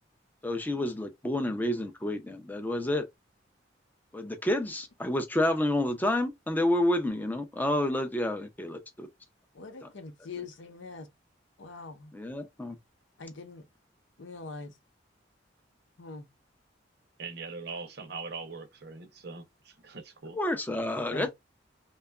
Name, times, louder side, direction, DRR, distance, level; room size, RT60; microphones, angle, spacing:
voice 1, 0.4-3.1 4.1-9.1 9.8-9.9 12.1-12.8 20.3-21.3, left 1 dB, 10° left, 0.4 m, -29 dB
voice 2, 9.5-11.1 11.6-12.1 13.2-13.7 14.2-14.8 16.0-16.3 21.1-21.3, left 4 dB, 85° left, 0.6 m, -43 dB
voice 3, 17.2-20.4, right 4 dB, 60° right, 0.6 m, -41 dB
2.8 x 2.3 x 2.3 m
head